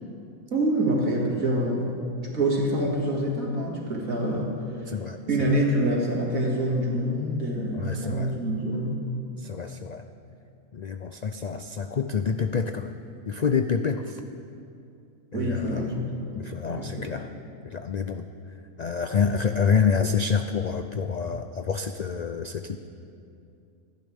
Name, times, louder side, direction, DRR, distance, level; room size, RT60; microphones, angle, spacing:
voice 1, 0.5-2.0 2.3-4.5 5.3-9.0 15.3-17.2, right 1 dB, 80° right, -2 dB, 2.7 m, -26 dB
voice 2, 4.9-5.2 7.7-8.3 9.4-10.0 10.7-13.0 13.2-14.2 15.3-16.0 16.3-17.3 17.6-18.3 18.8-22.8, left 6 dB, 80° left, 7 dB, 0.3 m, -27 dB
26.5 x 10.5 x 3.5 m, 2.6 s
omnidirectional pair, 1.4 m